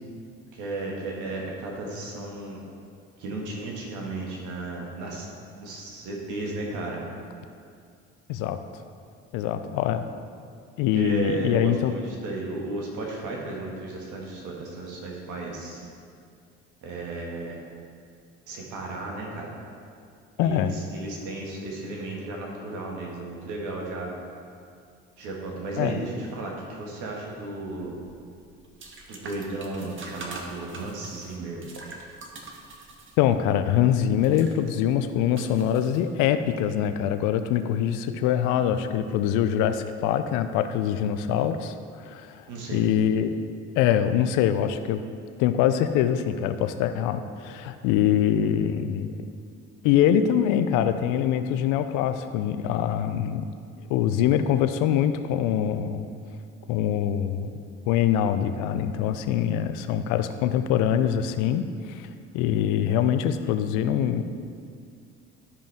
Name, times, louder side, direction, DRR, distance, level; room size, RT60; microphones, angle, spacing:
voice 1, 0.5-2.6 3.2-5.3 5.6-7.0 10.9-15.9 16.8-17.6 18.5-19.5 20.4-24.1 25.2-27.9 29.1-31.6 42.5-42.8, right 2 dB, 65° right, -1 dB, 1.8 m, -34 dB
voice 2, 9.3-10.0 10.8-11.9 20.4-20.7 25.8-25.9 33.2-42.4 42.7-43.3 43.8-45.0 45.4-49.1 49.8-53.5 53.9-56.1 56.7-57.5 57.9-62.1 62.3-64.2, left 9 dB, 65° left, 9 dB, 0.6 m, -24 dB
sound 1, 28.0-36.5, right 3 dB, 40° right, 1.3 m, -45 dB
12.5 x 5.2 x 3.5 m, 2.3 s
hypercardioid pair, 55°, 33 cm